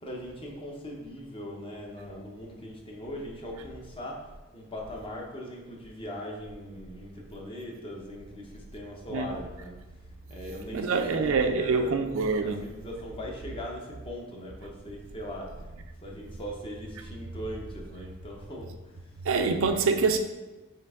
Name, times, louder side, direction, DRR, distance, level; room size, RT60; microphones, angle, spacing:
voice 1, 0.0-4.2 4.5-9.7 10.3-12.0 12.4-15.5 16.0-18.7, equal, 25° left, -1 dB, 0.8 m, -40 dB
voice 2, 10.7-12.6 19.2-20.2, right 4 dB, 80° right, 6 dB, 0.4 m, -25 dB
4.5 x 3.3 x 3.5 m, 1.1 s
head